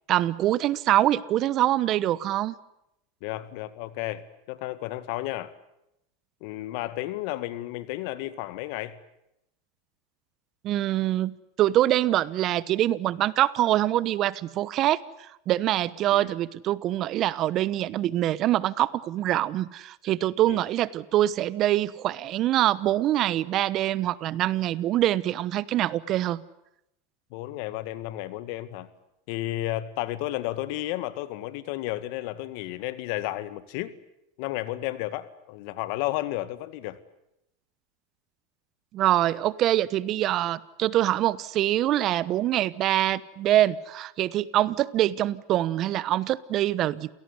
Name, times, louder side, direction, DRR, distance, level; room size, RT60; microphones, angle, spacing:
voice 1, 0.1-2.5 10.6-26.4 38.9-47.1, right 13 dB, 45° right, 19 dB, 1.0 m, -24 dB
voice 2, 3.2-5.5 6.4-9.0 16.1-16.3 20.5-20.6 27.3-28.9 29.3-33.9 34.4-37.0, left 16 dB, 65° left, 14 dB, 1.9 m, -32 dB
28.5 x 17.5 x 9.7 m, 0.83 s
hypercardioid pair, 105°, 0 cm